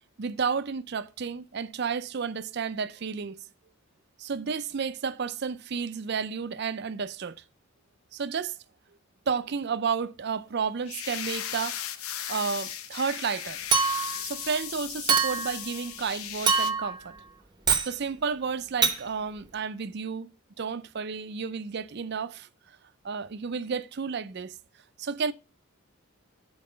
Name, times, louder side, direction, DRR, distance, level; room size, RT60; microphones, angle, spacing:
voice 1, 0.2-3.4 4.2-7.4 8.1-8.6 9.3-11.8 12.3-13.6 14.2-17.2 17.9-20.3 20.6-22.5 23.0-24.5 25.0-25.3, right 5 dB, 50° right, 0.5 m, -31 dB
sound 1, 10.9-16.7, left 10 dB, 80° left, 0.7 m, -37 dB
Chink clink, 13.7-14.2 15.1-15.6 16.5-17.0 17.7-17.9 18.8-19.0, right 5 dB, 20° right, 0.8 m, -24 dB
7.3 x 4.7 x 6.7 m
head